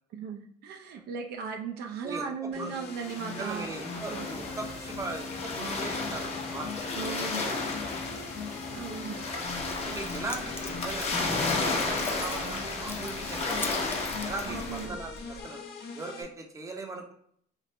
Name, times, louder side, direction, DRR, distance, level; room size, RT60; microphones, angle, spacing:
voice 1, 0.1-3.7 4.1-4.3 6.9-7.5 8.7-9.2 14.5-15.0, right 6 dB, 75° right, 3 dB, 0.6 m, -37 dB
voice 2, 2.0-2.7 3.3-7.5 9.8-11.1 11.4-13.8 14.2-15.6 15.9-17.1, right 3 dB, 20° right, 2 dB, 0.7 m, -39 dB
sound 1, 2.5-16.2, left 4 dB, 70° left, 0.7 m, -42 dB
sound 2, 2.9-14.9, left 3 dB, 40° left, 0.8 m, -33 dB
Keys jangling, 9.4-15.4, left 2 dB, 15° left, 0.4 m, -44 dB
3.2 x 2.5 x 3.2 m, 0.63 s
cardioid pair, 110°, 17 cm